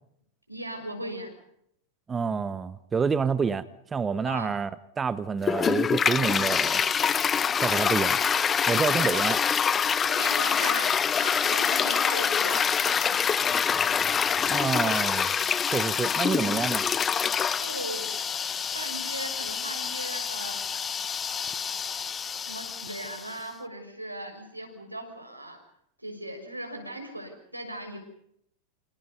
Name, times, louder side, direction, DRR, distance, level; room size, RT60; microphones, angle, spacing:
voice 1, 0.5-1.3 4.2-4.5 8.9-9.2 10.0-12.6 13.0-13.2 17.5-18.1 18.7-20.6 22.4-25.6 26.0-28.0, right 1 dB, 85° right, 3 dB, 6.6 m, -38 dB
voice 2, 2.1-3.6 3.9-4.7 5.0-6.8 7.6-8.2 8.7-9.4 14.5-15.3 15.6-16.8, right 5 dB, 15° right, 15 dB, 1.0 m, -28 dB
Toilet flush, 5.4-23.4, left 7 dB, 20° left, 0.9 m, -26 dB
28.5 x 27.5 x 5.5 m, 0.73 s
figure-of-eight pair, 90°, 0 cm